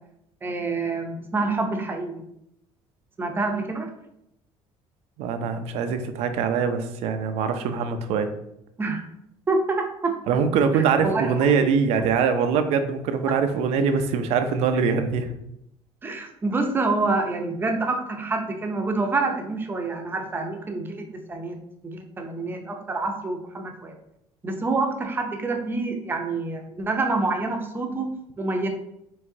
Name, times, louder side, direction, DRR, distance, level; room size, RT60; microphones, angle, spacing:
voice 1, 0.4-2.2 3.2-3.9 8.8-9.0 9.5-10.2 10.7-11.3 11.6-11.7 16.0-21.6 21.8-23.9 24.4-28.1 28.4-28.7, right 3 dB, 20° right, 3 dB, 0.6 m, -27 dB
voice 2, 5.2-8.3 10.3-15.3, right 6 dB, 70° right, 8 dB, 0.5 m, -23 dB
4.7 x 3.4 x 2.7 m, 0.79 s
cardioid pair, 135°, 11 cm